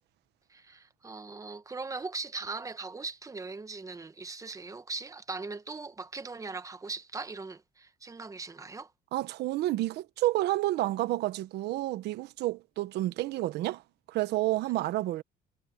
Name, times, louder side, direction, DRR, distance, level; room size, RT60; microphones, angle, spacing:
voice 1, 0.5-8.9, right 3 dB, 20° right, 1.3 m, -40 dB
voice 2, 9.1-13.8 14.1-15.2, right 16 dB, 80° right, 1.2 m, -30 dB
cardioid pair, 110°, 17 cm